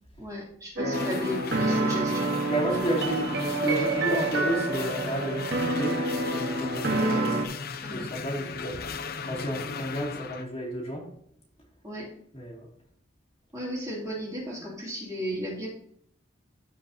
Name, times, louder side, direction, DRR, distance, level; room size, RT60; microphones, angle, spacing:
voice 1, 0.2-2.3 3.7-3.8 6.9-7.1 7.8-8.1 11.8-12.1 13.5-15.7, equal, 15° right, -5 dB, 2.7 m, -35 dB
voice 2, 0.8-1.2 2.5-7.4 7.9-8.8 9.2-11.1 12.3-12.7, right 1 dB, 30° left, -4 dB, 2.5 m, -31 dB
sound 1, 0.8-7.5, right 2 dB, 55° right, 1.3 m, -28 dB
sound 2, 0.9-10.4, left 5 dB, 50° left, 0.5 m, -37 dB
15.0 x 5.1 x 2.8 m, 0.66 s
head